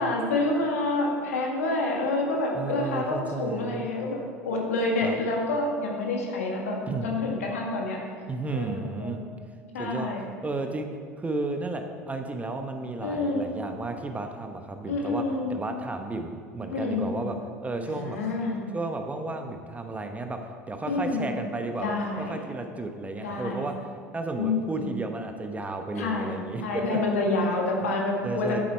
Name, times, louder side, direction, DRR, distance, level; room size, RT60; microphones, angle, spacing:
voice 1, 0.0-8.0 8.5-9.2 9.7-10.2 13.0-13.4 14.9-15.5 16.7-17.1 17.8-18.6 20.9-21.3 21.8-22.4 23.2-23.7 24.4-24.9 26.0-26.3 26.6-28.6, left 2 dB, 70° left, 0 dB, 1.7 m, -28 dB
voice 2, 2.5-3.9 5.0-5.2 6.9-7.1 8.3-9.2 9.8-10.1 10.4-10.9 11.2-15.2 15.5-18.2 18.7-27.0 28.2-28.6, right 3 dB, 15° right, 5 dB, 1.0 m, -33 dB
10.5 x 8.7 x 4.3 m, 2.1 s
figure-of-eight pair, 70°, 8 cm